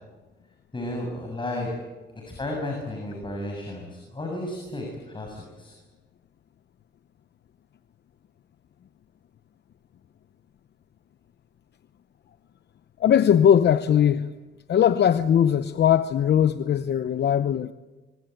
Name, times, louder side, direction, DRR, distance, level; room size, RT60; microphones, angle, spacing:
voice 1, 0.7-1.7 2.2-5.7, left 1 dB, 25° left, 7.1 m, -33 dB
voice 2, 13.0-14.3 14.7-17.7, left 9 dB, 60° left, 0.9 m, -20 dB
27.0 x 24.5 x 9.2 m
cardioid pair, 95°, 19 cm